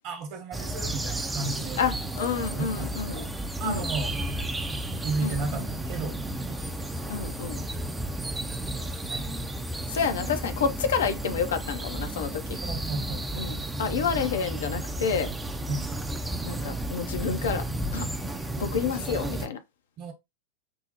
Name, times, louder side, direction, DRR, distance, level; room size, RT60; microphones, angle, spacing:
voice 1, 0.0-1.9 2.5-3.3 3.6-7.1 8.7-9.3 12.6-13.5 15.7-16.0 20.0-20.1, right 3 dB, 40° right, 1.0 m, -35 dB
sound 1, 0.5-19.5, right 1 dB, 10° right, 0.4 m, -33 dB
voice 2, 1.8-3.3 3.6-3.8 5.2-5.7 7.1-7.6 9.9-12.6 13.4-15.3 16.4-17.6 17.9-18.0 18.6-19.6, left 6 dB, 60° left, 0.5 m, -29 dB
5.3 x 2.0 x 2.9 m
figure-of-eight pair, 90°, 0 cm